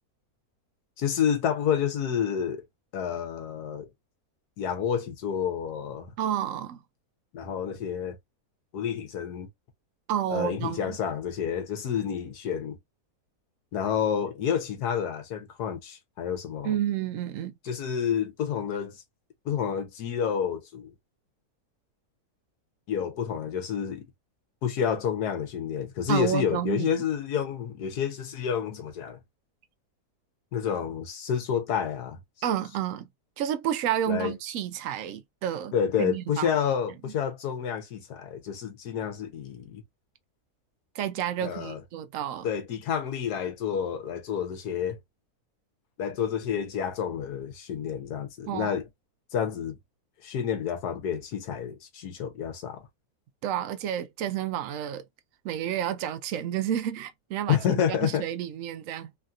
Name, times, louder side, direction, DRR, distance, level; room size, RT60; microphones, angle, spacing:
voice 1, 1.0-2.6 2.9-3.9 4.6-6.1 7.3-8.2 8.7-9.5 10.3-12.8 13.7-16.8 17.7-19.0 19.4-20.9 22.9-24.0 24.6-29.2 30.5-32.2 34.1-34.3 35.7-39.8 41.4-41.8 42.4-45.0 46.0-48.8 49.3-49.8 50.2-52.8 57.5-58.2, left 8 dB, 85° left, 1.4 m, -29 dB
voice 2, 6.2-6.8 10.1-11.0 16.6-17.5 26.1-27.0 32.4-33.1 33.4-35.7 36.0-36.5 37.1-37.2 40.9-42.5 48.5-48.8 53.4-55.0 55.4-59.2, right 10 dB, 70° right, 0.8 m, -30 dB
3.3 x 2.6 x 2.3 m
omnidirectional pair, 1.6 m